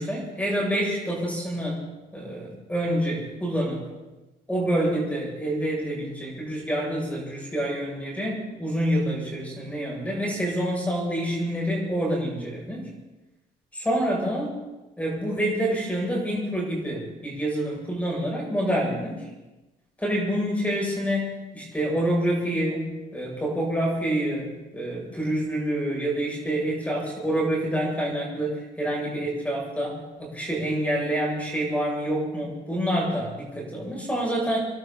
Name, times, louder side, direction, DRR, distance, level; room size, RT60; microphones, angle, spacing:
voice 1, 0.0-1.8 2.1-3.8 4.5-12.9 13.7-14.5 15.0-19.3 20.0-34.6, right 1 dB, 10° left, -3 dB, 7.8 m, -27 dB
28.0 x 12.0 x 4.3 m, 1.1 s
cardioid pair, 110°, 17 cm